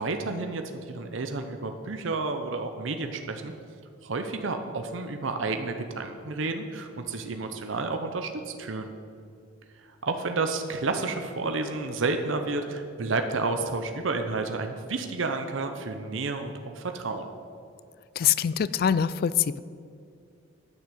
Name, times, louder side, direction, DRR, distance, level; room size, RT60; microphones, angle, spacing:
voice 1, 0.0-3.5 4.0-8.9 9.8-17.2, right 3 dB, 75° right, 6 dB, 0.8 m, -31 dB
voice 2, 18.2-19.6, left 8 dB, 50° left, 17 dB, 0.3 m, -24 dB
10.0 x 6.3 x 7.6 m, 2.4 s
head